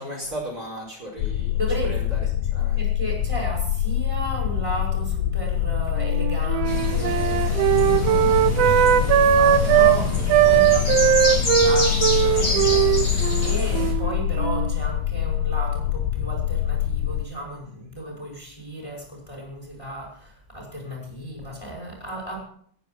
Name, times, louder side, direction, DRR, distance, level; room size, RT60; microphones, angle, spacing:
voice 1, 0.0-1.6 1.9-2.2 2.5-2.8, equal, 25° right, -3 dB, 5.0 m, -35 dB
sound 1, 1.2-17.3, left 12 dB, 90° left, 2.5 m, -25 dB
voice 2, 1.5-2.2 2.8-10.1 10.4-22.4, right 1 dB, 10° left, -1 dB, 5.6 m, -34 dB
Wind instrument woodwind instrument, 6.0-10.0 10.3-14.8, right 10 dB, 70° right, 1.5 m, -19 dB
sound 2, 6.6-13.9, left 1 dB, 25° left, 4.5 m, -27 dB
19.0 x 10.5 x 6.1 m, 0.62 s
omnidirectional pair, 3.9 m